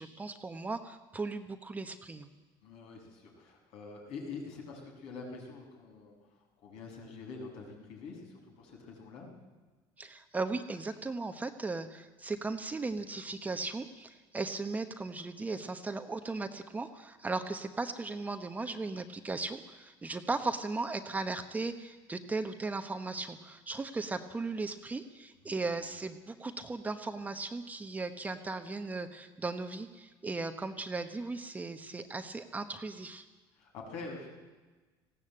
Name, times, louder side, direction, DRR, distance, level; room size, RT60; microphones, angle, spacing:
voice 1, 0.0-2.3 10.0-33.2, right 3 dB, 15° right, 8 dB, 1.0 m, -37 dB
voice 2, 2.6-6.1 6.6-9.3 25.4-25.5 25.8-25.9 33.5-34.3, left 4 dB, 70° left, 0 dB, 6.6 m, -45 dB
19.5 x 16.0 x 8.8 m, 1.3 s
cardioid pair, 145°, 11 cm